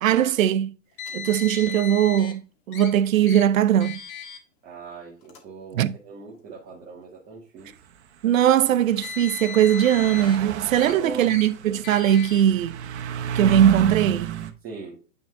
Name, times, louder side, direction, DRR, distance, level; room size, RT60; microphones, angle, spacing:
voice 1, 0.0-0.7 1.1-2.4 2.7-4.0 5.7-5.9 8.2-12.8 13.3-14.4, right 10 dB, 90° right, 0.7 m, -20 dB
Car, 1.0-2.3 2.7-2.9 3.3-3.4 3.8-4.4 5.2-5.4 6.3-6.4 8.7-10.4 10.8-10.9 11.3-11.5 11.8-12.4, left 6 dB, 30° left, 1.4 m, -36 dB
voice 2, 4.6-7.7 10.8-11.3 14.6-15.0, right 4 dB, 25° right, 1.6 m, -39 dB
sound 1, 8.8-8.9 9.4-14.5, right 9 dB, 55° right, 1.0 m, -31 dB
8.9 x 3.6 x 3.7 m
hypercardioid pair, 155°, 39 cm